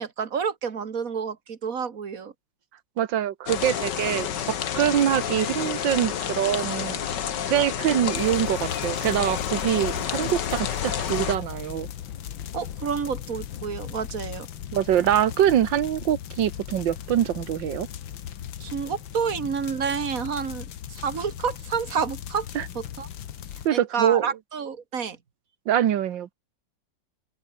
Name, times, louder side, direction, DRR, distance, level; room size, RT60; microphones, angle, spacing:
voice 1, 0.0-2.3 12.5-14.5 18.6-22.5 22.8-23.1 23.7-25.2, right 6 dB, 45° right, 2.0 m, -29 dB
voice 2, 3.0-4.3 4.8-7.0 7.5-11.9 14.7-17.9 22.6-22.7 23.7-24.3 25.7-26.3, right 10 dB, 75° right, 1.8 m, -24 dB
sound 1, 3.5-11.4, left 9 dB, 65° left, 1.9 m, -29 dB
sound 2, 8.1-23.7, left 10 dB, 85° left, 2.0 m, -38 dB
open air
omnidirectional pair, 2.1 m